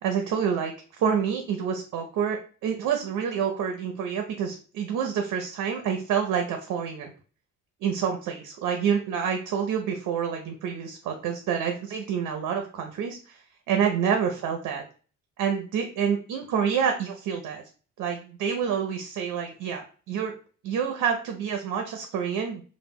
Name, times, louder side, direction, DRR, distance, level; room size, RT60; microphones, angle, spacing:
voice 1, 0.0-7.1 7.8-13.4 13.7-14.8 15.4-17.6 18.0-20.3 20.6-22.6, right 7 dB, 80° right, 4 dB, 0.5 m, -28 dB
2.1 x 2.1 x 3.4 m, 0.40 s
cardioid pair, 90°, 30 cm